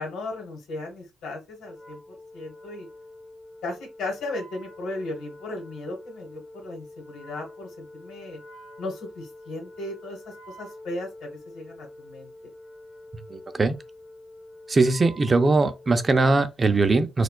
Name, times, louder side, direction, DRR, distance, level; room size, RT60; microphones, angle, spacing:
voice 1, 0.0-2.0 2.3-2.9 3.6-8.4 8.8-12.5, left 2 dB, 75° left, 1.3 m, -36 dB
Wind instrument woodwind instrument, 1.6-16.4, left 1 dB, 35° left, 1.2 m, -46 dB
voice 2, 13.3-13.7 14.7-17.2, right 3 dB, 30° right, 0.4 m, -21 dB
4.2 x 2.3 x 2.2 m
cardioid pair, 90°, 0 cm